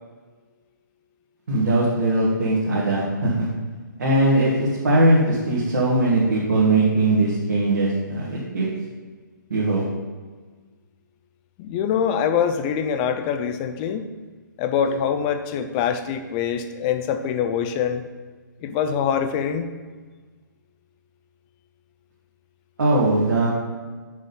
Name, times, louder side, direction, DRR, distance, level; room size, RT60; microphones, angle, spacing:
voice 1, 1.5-3.5 4.0-8.7 9.5-9.8 22.8-23.5, right 2 dB, 55° right, -6 dB, 1.7 m, -20 dB
voice 2, 11.6-14.1 14.6-18.0 18.6-19.7, left 7 dB, 25° left, 9 dB, 0.5 m, -24 dB
6.4 x 5.2 x 5.4 m, 1.4 s
figure-of-eight pair, 130°, 11 cm